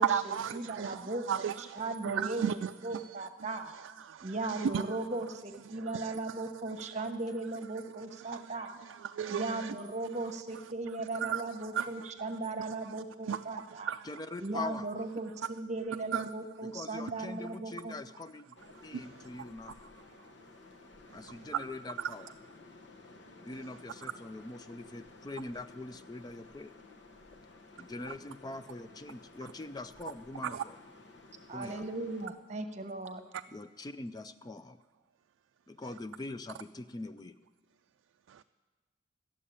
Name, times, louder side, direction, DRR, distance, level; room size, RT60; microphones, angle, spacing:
voice 1, 0.0-4.8 5.7-7.0 8.0-9.8 11.1-12.1 12.6-12.9 13.2-14.1 16.1-16.3 18.9-19.3 21.1-21.4 22.0-22.1 30.4-30.6 33.3-33.4 38.3-38.4, right 8 dB, 80° right, 0.3 m, -36 dB
voice 2, 0.5-1.2 1.6-3.7 4.2-8.8 9.3-13.9 14.4-17.9 31.5-33.2, right 2 dB, 35° right, 1.0 m, -37 dB
voice 3, 14.0-14.9 16.6-18.6 18.8-19.9 21.1-22.3 23.4-26.7 27.8-30.8 31.5-31.9 33.5-34.8 35.7-37.3, left 2 dB, 20° left, 0.3 m, -43 dB
sound 1, 18.6-32.3, left 3 dB, 65° left, 1.1 m, -55 dB
14.0 x 7.4 x 9.9 m
head